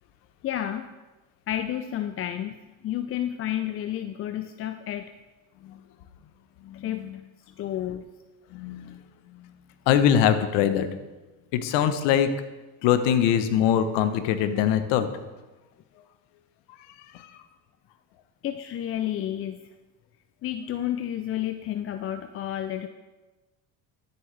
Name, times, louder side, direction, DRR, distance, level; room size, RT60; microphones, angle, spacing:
voice 1, 0.4-0.9 1.5-5.1 6.7-7.1 7.6-8.0 18.4-19.6 20.4-22.9, left 11 dB, 35° left, 9 dB, 0.4 m, -31 dB
voice 2, 6.6-7.1 8.5-9.0 9.9-10.9 11.5-12.3 12.8-15.1 17.1-17.3, left 9 dB, 75° left, 10 dB, 0.9 m, -23 dB
12.5 x 7.1 x 3.3 m, 1.2 s
supercardioid pair, 95°, 44 cm